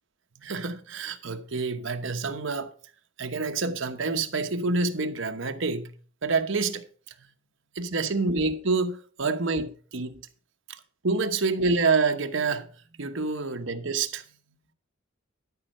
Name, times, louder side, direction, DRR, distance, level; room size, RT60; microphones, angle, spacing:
voice 1, 0.4-2.7 3.2-5.9 6.2-6.9 7.7-10.2 10.7-12.7 13.0-14.3, right 3 dB, 65° right, 1.1 m, -27 dB
12.5 x 5.4 x 6.5 m
head